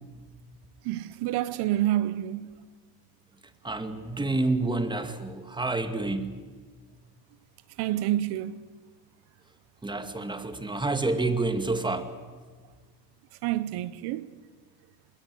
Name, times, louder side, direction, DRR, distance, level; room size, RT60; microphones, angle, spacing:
voice 1, 0.8-2.5 7.8-8.6 13.4-14.3, right 13 dB, 85° right, 1.0 m, -28 dB
voice 2, 3.6-6.3 9.8-12.1, right 2 dB, 10° right, 2.1 m, -28 dB
27.0 x 21.5 x 7.9 m
cardioid pair, 120°, 38 cm